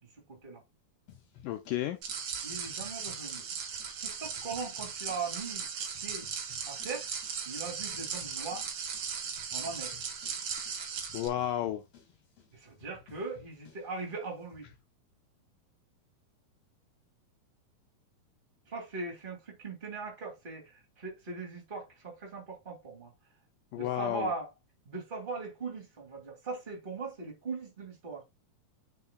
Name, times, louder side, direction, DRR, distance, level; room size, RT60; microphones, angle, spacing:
voice 1, 0.0-0.6 2.4-3.4 4.0-5.7 6.0-6.3 6.7-7.1 7.4-8.7 9.5-10.0 12.5-14.7 18.7-23.1 23.7-24.5 24.8-28.2, right 4 dB, 15° right, 2.3 m, -40 dB
sound 1, 1.1-14.8, left 8 dB, 50° left, 2.5 m, -59 dB
voice 2, 1.4-2.0 11.1-11.8 23.7-24.3, left 12 dB, 80° left, 2.0 m, -32 dB
sound 2, 2.0-11.3, right 6 dB, 55° right, 1.8 m, -38 dB
9.5 x 5.8 x 2.3 m
omnidirectional pair, 4.2 m